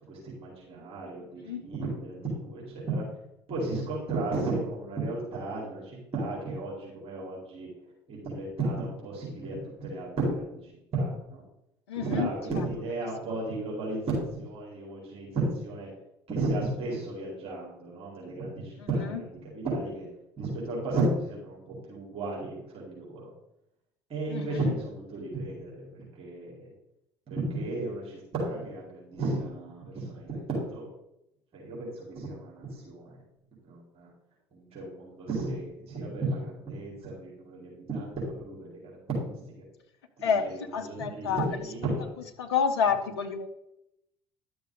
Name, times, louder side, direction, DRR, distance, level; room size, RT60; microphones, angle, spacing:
voice 1, 0.1-3.0 3.5-7.7 8.1-11.4 11.9-15.9 16.3-20.1 20.4-23.3 24.1-26.7 27.3-30.9 31.5-33.2 33.6-34.1 34.5-39.6 40.2-42.1, right 2 dB, 45° right, -4 dB, 4.3 m, -34 dB
voice 2, 11.9-12.3 24.3-24.7 40.2-41.4 42.4-43.5, left 6 dB, 70° left, 5 dB, 1.0 m, -28 dB
11.5 x 6.9 x 4.0 m, 0.84 s
figure-of-eight pair, 60°, 14 cm